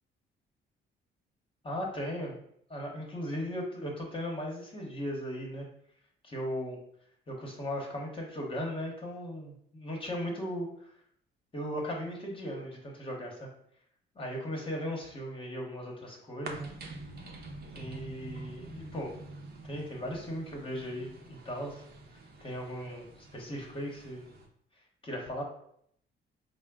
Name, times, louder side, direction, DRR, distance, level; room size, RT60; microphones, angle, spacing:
voice 1, 1.6-2.4 2.7-5.7 6.2-6.8 7.3-10.9 11.5-13.5 14.1-16.7 17.2-17.3 17.7-19.1 19.6-21.8 22.4-24.2 25.0-25.4, equal, 25° left, -1 dB, 1.1 m, -37 dB
sound 1, 16.4-24.5, right 2 dB, 55° right, 0.8 m, -46 dB
4.3 x 2.1 x 3.6 m, 0.68 s
cardioid pair, 90°, 20 cm